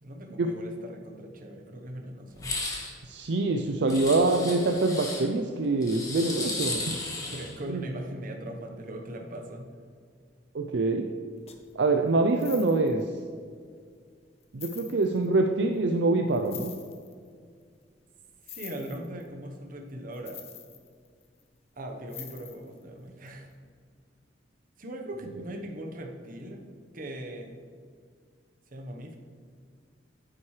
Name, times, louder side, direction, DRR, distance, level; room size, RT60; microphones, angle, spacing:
voice 1, 0.0-2.5 7.3-9.7 18.4-20.4 21.8-23.5 24.8-26.6 26.9-27.6 28.7-29.2, right 1 dB, 50° right, 3 dB, 1.0 m, -40 dB
sound 1, 2.4-2.9 3.9-5.2 5.8-7.5, left 2 dB, 20° left, 1.5 m, -34 dB
voice 2, 3.0-7.0 7.7-7.8 10.5-11.1 11.7-13.0 14.5-16.7, right 2 dB, 65° right, 4 dB, 0.5 m, -25 dB
sound 2, 11.5-11.7 12.3-13.0 13.8-13.9 14.4-15.3 16.3-17.1 18.4-19.3 20.1-21.4 22.1-22.8 23.3-23.4, left 9 dB, 35° left, 0.8 m, -45 dB
9.3 x 8.7 x 3.2 m, 2.1 s
head